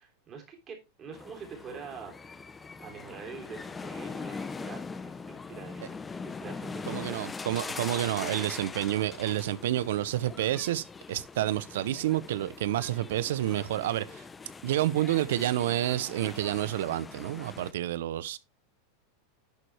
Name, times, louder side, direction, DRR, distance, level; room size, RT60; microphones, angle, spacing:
voice 1, 0.0-2.1 2.8-7.3 8.2-8.3, right 5 dB, 30° right, 3.3 m, -45 dB
sound 1, 1.1-17.7, left 4 dB, 15° left, 0.6 m, -42 dB
voice 2, 6.9-14.2 14.6-18.4, right 13 dB, 75° right, 0.6 m, -29 dB
10.5 x 4.7 x 3.3 m
hypercardioid pair, 115°, 0 cm